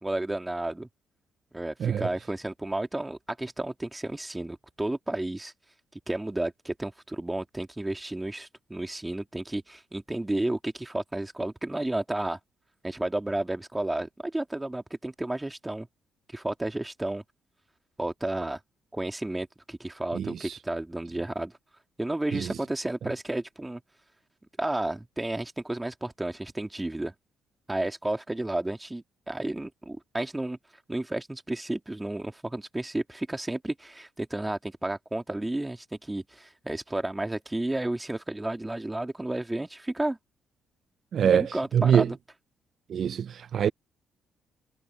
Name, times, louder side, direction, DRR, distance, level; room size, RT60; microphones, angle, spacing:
voice 1, 0.0-0.9 1.5-5.5 6.1-12.4 12.8-15.9 16.3-17.2 18.0-18.6 18.9-21.5 22.0-23.8 24.6-27.1 27.7-30.6 30.9-40.2 41.2-42.2, right 1 dB, 10° right, 2.5 m, -32 dB
voice 2, 20.1-20.6 22.3-22.5 41.1-42.1 42.9-43.7, right 8 dB, 60° right, 0.4 m, -24 dB
cardioid pair, 90°, 0 cm